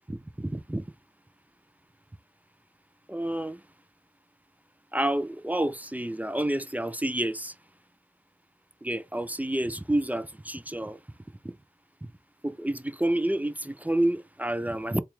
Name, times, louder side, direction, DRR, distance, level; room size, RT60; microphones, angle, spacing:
voice 1, 0.1-0.8 3.1-3.6 4.9-7.5 8.8-11.0 11.4-11.5 12.0-12.1 12.4-15.0, right 1 dB, 10° right, 0.4 m, -29 dB
3.7 x 2.3 x 3.2 m
wide cardioid pair, 55°, 15 cm